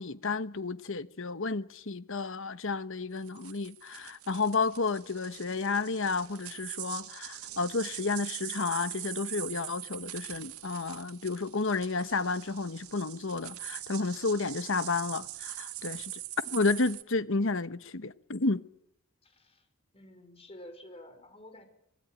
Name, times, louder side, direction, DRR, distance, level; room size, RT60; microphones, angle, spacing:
voice 1, 0.0-16.2 16.5-18.6, left 3 dB, 60° left, 1.2 m, -31 dB
sound 1, 3.2-17.0, right 15 dB, 90° right, 1.6 m, -43 dB
voice 2, 19.2-19.7 19.9-21.7, left 1 dB, 25° left, 5.3 m, -50 dB
25.5 x 21.5 x 9.3 m
head